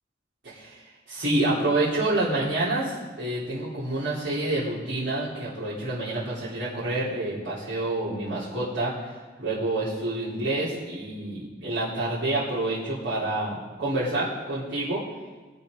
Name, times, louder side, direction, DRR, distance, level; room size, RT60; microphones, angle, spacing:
voice 1, 0.4-0.8 1.1-9.1 9.4-15.0, right 2 dB, 75° right, -11 dB, 3.6 m, -28 dB
20.5 x 7.0 x 5.2 m, 1.3 s
head